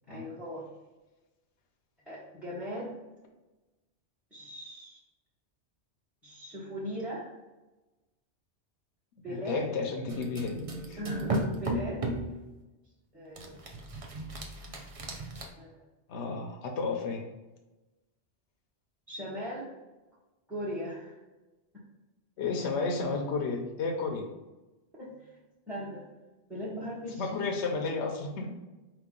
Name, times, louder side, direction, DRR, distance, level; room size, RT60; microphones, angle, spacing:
voice 1, 0.1-0.7 2.1-2.9 4.3-5.0 6.2-7.3 9.2-9.7 11.0-12.1 13.1-13.6 13.9-14.0 15.6-15.9 19.1-19.7 20.5-21.2 25.0-25.1 25.7-26.1 26.5-27.4 28.4-28.5, equal, ahead, -8 dB, 1.0 m, -38 dB
voice 2, 9.3-11.0 16.1-17.2 22.4-24.3 27.2-28.5, left 4 dB, 85° left, 2 dB, 1.0 m, -32 dB
sound 1, 10.1-12.3 13.4-15.5, right 1 dB, 40° right, 0.6 m, -35 dB
4.5 x 3.0 x 3.7 m, 1.1 s
omnidirectional pair, 1.1 m